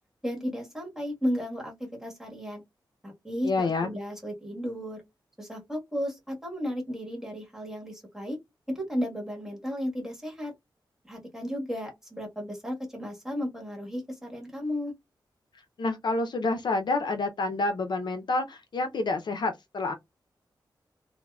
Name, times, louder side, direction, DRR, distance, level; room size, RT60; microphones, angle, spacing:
voice 1, 0.2-2.6 3.0-5.0 5.4-8.4 8.7-10.5 11.1-14.9, equal, 5° right, 1.3 m, -34 dB
voice 2, 3.4-3.9 15.8-19.9, left 3 dB, 65° left, 0.5 m, -28 dB
3.5 x 2.0 x 2.2 m
wide cardioid pair, 85°, 8 cm